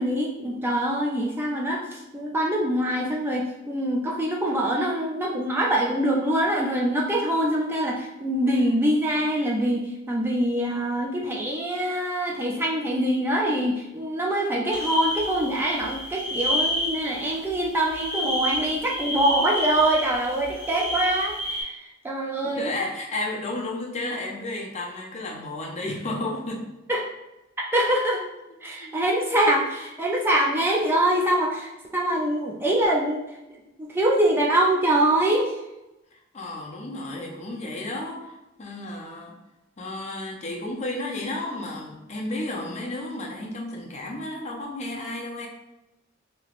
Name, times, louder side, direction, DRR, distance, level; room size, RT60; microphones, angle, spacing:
voice 1, 0.0-22.7 26.9-27.0 27.6-28.2 28.6-33.2 33.8-35.5, right 1 dB, 10° right, -2 dB, 0.3 m, -24 dB
sound 1, 14.7-21.6, left 1 dB, 30° right, 1.0 m, -29 dB
voice 2, 22.6-26.7 28.8-28.9 36.3-39.4 39.8-45.5, left 2 dB, 35° left, -1 dB, 0.6 m, -32 dB
3.3 x 2.9 x 2.4 m, 0.96 s
head